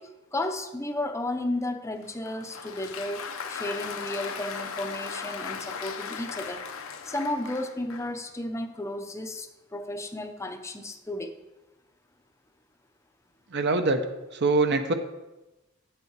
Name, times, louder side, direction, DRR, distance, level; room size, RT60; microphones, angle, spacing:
voice 1, 0.0-6.6 7.0-11.3, left 1 dB, 15° left, 6 dB, 0.6 m, -33 dB
Applause, 2.0-8.2, left 6 dB, 80° left, 0.8 m, -37 dB
voice 2, 13.5-14.0 14.3-14.9, right 3 dB, 55° right, 6 dB, 0.8 m, -23 dB
8.4 x 8.0 x 4.7 m, 1.0 s
head